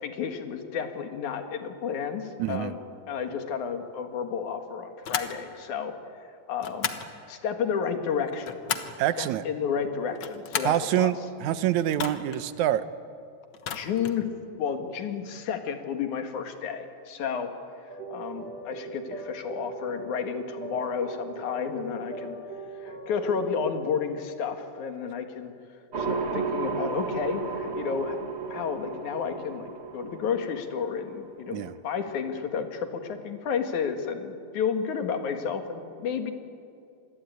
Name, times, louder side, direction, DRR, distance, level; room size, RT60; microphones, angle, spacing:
voice 1, 0.0-2.8 3.1-5.9 6.5-7.0 7.3-8.6 9.2-11.1 13.7-14.3 14.6-17.5 18.1-22.4 22.8-25.5 26.0-28.2 28.5-36.3, left 6 dB, 80° left, 6 dB, 3.2 m, -31 dB
voice 2, 2.4-2.7 9.0-9.4 10.6-12.8 31.5-31.7, right 12 dB, 80° right, 13 dB, 2.2 m, -26 dB
sound 1, 5.0-5.4 6.6-7.1 8.2-9.0 10.1-10.8 11.9-12.4 13.5-14.2, left 8 dB, 55° left, 1.6 m, -33 dB
sound 2, 17.9-23.9, right 3 dB, 55° right, 4.0 m, -40 dB
sound 3, 25.9-31.8, right 5 dB, 35° right, 1.2 m, -33 dB
26.5 x 21.0 x 9.4 m, 2.5 s
omnidirectional pair, 3.4 m